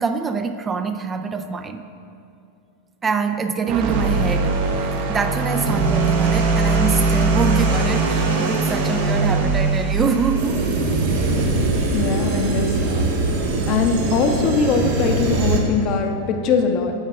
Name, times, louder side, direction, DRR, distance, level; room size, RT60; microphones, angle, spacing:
voice 1, 0.0-1.8 3.0-4.6 5.1-10.6, right 5 dB, 20° right, 8 dB, 0.4 m, -24 dB
sound 1, 3.7-11.8, right 4 dB, 55° right, 0.8 m, -21 dB
sound 2, 3.9-11.5, right 2 dB, 90° right, 1.8 m, -31 dB
sound 3, 10.4-15.6, right 3 dB, 70° right, 1.7 m, -22 dB
voice 2, 11.9-13.1 13.7-16.9, left 5 dB, 45° left, 4 dB, 0.8 m, -21 dB
9.3 x 7.4 x 3.4 m, 2.5 s
hypercardioid pair, 100°, 0 cm